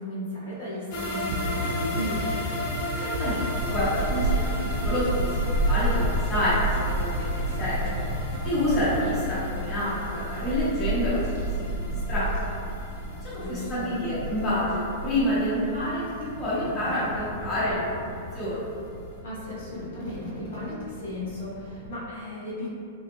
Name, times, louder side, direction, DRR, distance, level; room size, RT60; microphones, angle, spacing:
voice 1, 0.0-2.2 13.4-13.9 19.2-22.7, left 1 dB, 75° left, -7 dB, 1.0 m, -35 dB
sound 1, 0.9-18.0 18.3-18.4 18.8-18.9, left 1 dB, 40° left, 0.7 m, -37 dB
sound 2, 1.3-9.0, right 1 dB, 60° right, 0.3 m, -33 dB
voice 2, 3.0-5.3 5.6-6.5 6.9-7.3 7.6-7.8 8.4-11.2 11.6-11.7 12.1-12.3 13.2-18.0 18.3-18.6, left 1 dB, 25° left, -10 dB, 1.0 m, -28 dB
Child speech kid speaking / Wind, 3.5-21.9, right 1 dB, 85° right, 0.8 m, -32 dB
3.2 x 2.3 x 2.9 m, 2.4 s
supercardioid pair, 150°, 0 cm